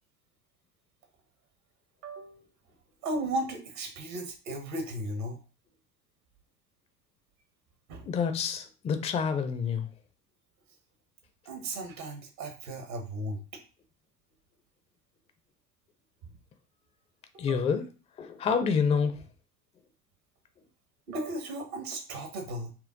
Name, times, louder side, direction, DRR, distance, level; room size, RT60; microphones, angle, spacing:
voice 1, 2.0-2.4 3.0-5.4 7.9-8.1 11.4-13.4 17.3-17.6 21.1-22.7, right 1 dB, 65° right, 3 dB, 1.3 m, -35 dB
voice 2, 8.1-9.9 17.4-17.9 18.2-19.2, left 6 dB, 15° left, 9 dB, 0.5 m, -28 dB
5.8 x 2.2 x 3.8 m, 0.34 s
figure-of-eight pair, 70°, 46 cm